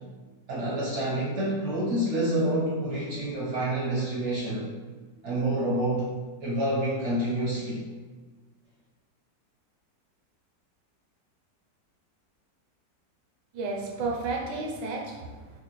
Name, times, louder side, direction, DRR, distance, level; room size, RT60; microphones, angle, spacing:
voice 1, 0.5-4.7 5.2-6.1 6.4-7.8, right 1 dB, 65° right, -5 dB, 0.7 m, -28 dB
voice 2, 13.5-15.6, right 3 dB, 85° right, 1 dB, 1.3 m, -32 dB
4.4 x 2.2 x 2.9 m, 1.3 s
omnidirectional pair, 1.9 m